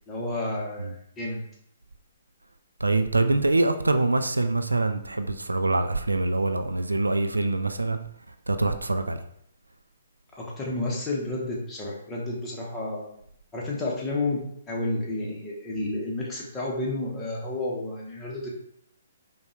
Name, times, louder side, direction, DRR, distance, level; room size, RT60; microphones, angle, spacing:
voice 1, 0.1-1.4 10.3-13.0 13.5-18.5, left 2 dB, 15° left, -4 dB, 1.1 m, -31 dB
voice 2, 2.8-8.0 8.5-9.2, right 2 dB, 85° right, 8 dB, 0.3 m, -24 dB
5.1 x 2.3 x 3.2 m, 0.71 s
figure-of-eight pair, 130°, 0 cm